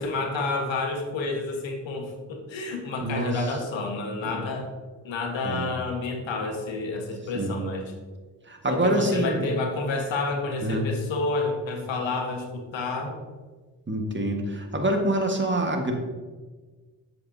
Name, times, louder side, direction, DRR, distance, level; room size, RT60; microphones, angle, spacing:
voice 1, 0.0-4.7 5.0-7.9 8.7-13.2, left 3 dB, 65° left, 3 dB, 1.5 m, -29 dB
voice 2, 3.0-3.3 4.2-4.3 5.4-5.7 7.3-7.6 8.5-9.5 10.6-10.9 13.9-15.9, right 1 dB, 25° right, 3 dB, 1.6 m, -26 dB
7.7 x 7.5 x 2.8 m, 1.4 s
hypercardioid pair, 45°, 48 cm